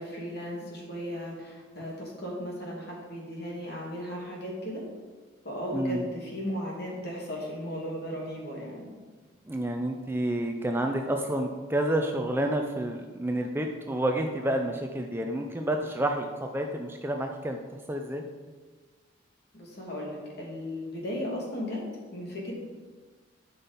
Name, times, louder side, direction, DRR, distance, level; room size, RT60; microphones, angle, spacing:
voice 1, 0.0-4.8 5.4-8.9 19.5-21.8 22.1-22.6, equal, 50° left, -2 dB, 2.4 m, -36 dB
voice 2, 5.7-6.0 9.5-17.6 17.9-18.2, right 1 dB, 10° right, 3 dB, 0.5 m, -29 dB
11.5 x 5.8 x 4.1 m, 1.4 s
head